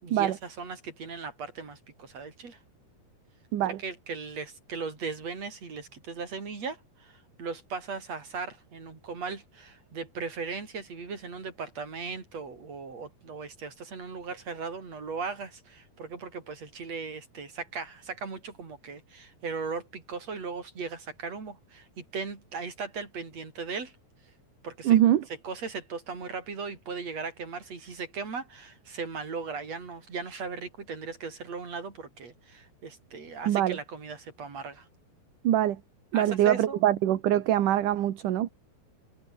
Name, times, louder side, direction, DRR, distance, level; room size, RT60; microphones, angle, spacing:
voice 1, 0.0-2.6 3.6-23.9 24.6-25.0 25.4-34.9 36.1-36.8, right 5 dB, 40° right, 5.7 m, -38 dB
voice 2, 24.8-25.2 33.5-33.8 35.4-35.8 36.1-38.5, right 12 dB, 60° right, 2.7 m, -23 dB
omnidirectional pair, 4.5 m